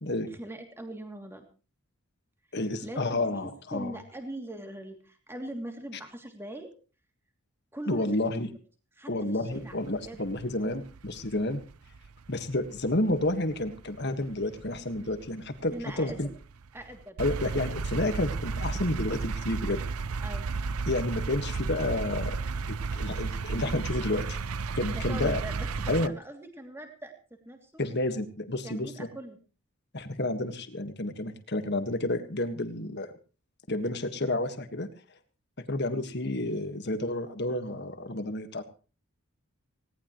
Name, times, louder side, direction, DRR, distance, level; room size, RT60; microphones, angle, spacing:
voice 1, 0.3-1.5 2.8-3.1 3.4-6.7 7.7-8.1 8.4-8.6 9.0-10.2 15.7-16.2 16.7-17.6 20.2-20.5 24.9-27.8 28.6-29.4, right 1 dB, 10° right, 4 dB, 2.8 m, -41 dB
voice 2, 2.5-4.0 7.9-8.5 9.1-11.6 12.3-16.3 17.2-19.8 20.9-22.4 22.7-24.4 24.8-25.4 25.9-26.1 27.8-28.9 29.9-33.1 33.7-34.9 35.7-38.6, left 1 dB, 50° left, 8 dB, 1.8 m, -30 dB
sound 1, 9.5-26.1, right 4 dB, 85° right, 0.7 m, -34 dB
19.5 x 18.0 x 3.2 m, 0.35 s
head